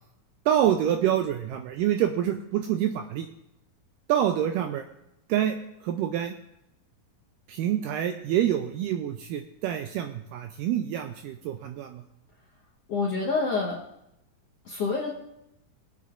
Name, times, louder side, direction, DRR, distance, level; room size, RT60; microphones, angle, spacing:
voice 1, 0.5-3.3 4.1-4.8 5.3-5.6 5.8-6.3 7.5-12.0, right 10 dB, 85° right, 6 dB, 1.9 m, -26 dB
voice 2, 12.9-13.8 14.6-15.2, left 4 dB, 70° left, -4 dB, 1.5 m, -27 dB
22.0 x 8.2 x 2.5 m, 0.84 s
omnidirectional pair, 4.3 m